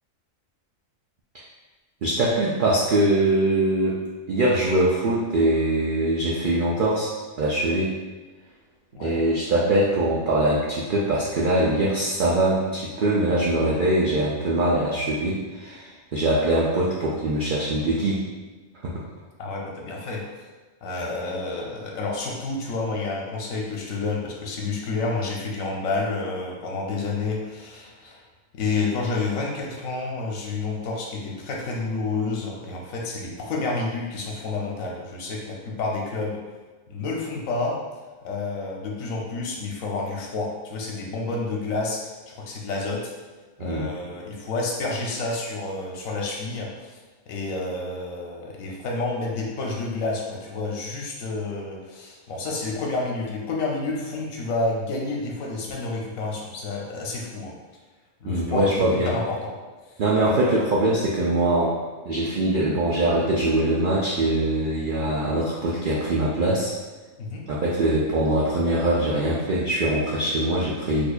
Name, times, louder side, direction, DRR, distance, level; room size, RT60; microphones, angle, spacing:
voice 1, 2.0-4.0 4.3-7.1 7.4-7.9 9.0-18.2 18.8-19.0 43.6-43.9 58.2-59.1 60.0-61.8 62.1-66.7 67.5-71.1, right 1 dB, 75° right, -5 dB, 0.4 m, -22 dB
voice 2, 19.4-20.2 20.8-28.2 28.5-36.4 36.9-37.8 38.2-43.1 43.6-57.5 58.2-59.5 59.9-60.7 67.2-67.4, left 3 dB, 85° left, -1 dB, 1.1 m, -29 dB
4.3 x 2.5 x 2.3 m, 1.3 s
omnidirectional pair, 1.4 m